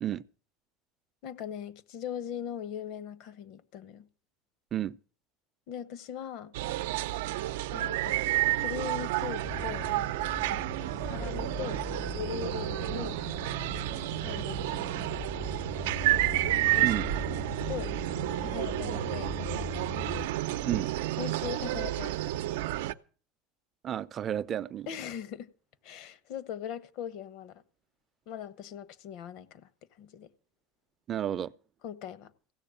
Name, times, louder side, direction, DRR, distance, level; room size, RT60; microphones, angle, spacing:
voice 1, 1.2-4.1 5.7-6.5 7.7-9.9 11.0-11.8 12.1-13.2 14.2-15.1 16.7-16.9 17.7-17.9 18.4-19.3 21.2-22.2 24.9-25.5 25.8-27.6 28.3-29.7 30.0-30.3 31.8-32.3, left 9 dB, 65° left, 1.2 m, -40 dB
sound 1, 6.5-22.9, right 15 dB, 80° right, 0.6 m, -31 dB
sound 2, 9.5-20.3, left 4 dB, 15° left, 0.6 m, -40 dB
voice 2, 23.8-24.9 31.1-31.5, right 11 dB, 40° right, 0.6 m, -31 dB
16.0 x 6.9 x 8.9 m
supercardioid pair, 105°, 0 cm